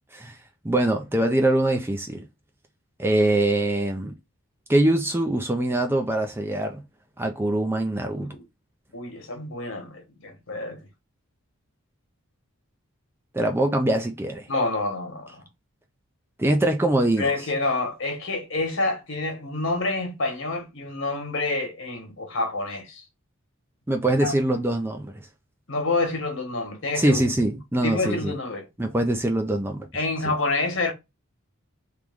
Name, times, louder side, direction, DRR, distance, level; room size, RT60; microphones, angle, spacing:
voice 1, 0.6-2.2 3.0-4.1 4.7-6.8 7.2-8.4 13.3-14.5 16.4-17.3 23.9-25.2 27.0-28.3 28.8-29.9, right 1 dB, 10° right, 0.4 m, -23 dB
voice 2, 8.9-10.8 14.5-15.4 17.2-23.0 24.2-24.3 25.7-27.2 27.8-28.7 29.9-30.9, left 2 dB, 60° left, 1.2 m, -28 dB
3.4 x 3.0 x 3.5 m
head